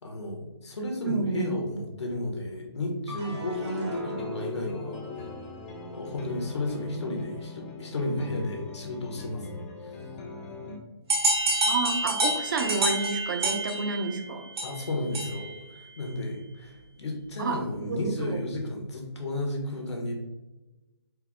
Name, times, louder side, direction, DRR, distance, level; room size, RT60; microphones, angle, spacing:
voice 1, 0.0-5.0 5.9-9.9 14.6-20.1, left 1 dB, 75° left, 1 dB, 1.2 m, -33 dB
voice 2, 1.0-1.6 10.7-10.8 11.7-14.5 17.4-18.4, right 4 dB, 45° right, 6 dB, 0.5 m, -30 dB
sound 1, 3.1-10.8, left 3 dB, 15° left, 0.4 m, -42 dB
sound 2, 3.1-9.5 10.0-10.6, left 2 dB, 85° right, 1.3 m, -41 dB
sound 3, 11.1-15.6, right 1 dB, 65° right, 1.1 m, -28 dB
4.4 x 2.0 x 3.6 m, 1.0 s
hypercardioid pair, 160°, 14 cm